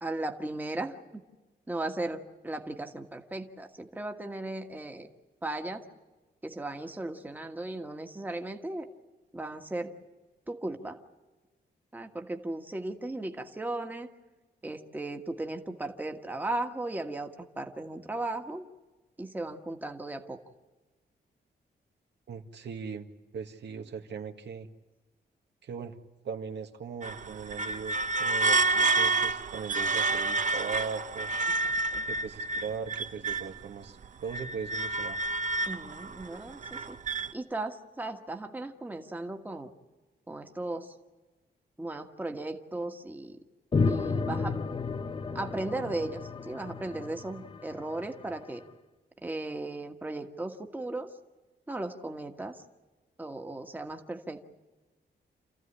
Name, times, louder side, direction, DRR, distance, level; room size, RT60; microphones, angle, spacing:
voice 1, 0.0-1.2 1.7-5.1 5.4-5.8 6.4-8.9 9.3-9.9 10.5-11.0 11.9-14.1 14.6-18.7 19.2-20.4 31.6-32.0 35.7-37.0 37.3-39.7 40.3-40.9 41.8-43.4 43.9-44.6 45.3-48.6 49.2-51.1 51.7-52.6 53.2-54.4, right 2 dB, 10° right, 5 dB, 1.5 m, -36 dB
voice 2, 22.3-23.1 23.3-24.7 25.6-26.0 26.2-31.3 32.1-35.2, right 6 dB, 80° right, 5 dB, 1.8 m, -39 dB
sound 1, 27.0-33.6 34.0-37.3, right 3 dB, 45° right, 0.8 m, -29 dB
sound 2, 43.7-48.4, left 4 dB, 30° left, 0.9 m, -32 dB
28.0 x 15.0 x 10.0 m, 1.2 s
wide cardioid pair, 165°, 18 cm